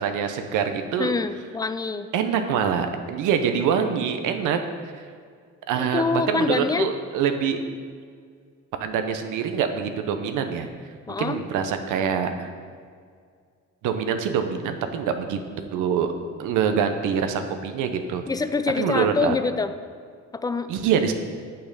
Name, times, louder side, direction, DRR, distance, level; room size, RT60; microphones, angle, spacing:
voice 1, 0.0-1.1 2.1-4.6 5.0-5.1 5.7-7.6 8.8-10.7 11.2-12.5 13.8-15.4 15.7-16.1 16.4-18.2 18.8-19.4 20.7-21.1, right 7 dB, 90° right, 7 dB, 0.7 m, -25 dB
voice 2, 1.0-2.1 5.8-6.9 11.1-11.4 18.3-19.7 20.3-20.7, left 4 dB, 15° left, 11 dB, 0.3 m, -25 dB
6.5 x 5.7 x 5.3 m, 2.1 s
cardioid pair, 90°, 30 cm